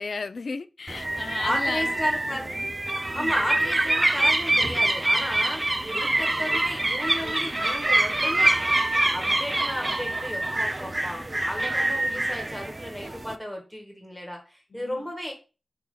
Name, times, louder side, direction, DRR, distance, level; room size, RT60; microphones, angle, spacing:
voice 1, 0.0-1.9 3.1-3.4 14.7-15.1, left 4 dB, 75° left, 0.4 m, -35 dB
sound 1, 0.9-13.4, right 2 dB, 30° right, 0.5 m, -25 dB
voice 2, 1.4-2.6 3.1-5.7 5.9-8.5 9.1-15.3, equal, 10° left, 1.8 m, -33 dB
6.1 x 2.9 x 5.6 m
wide cardioid pair, 70°, 0 cm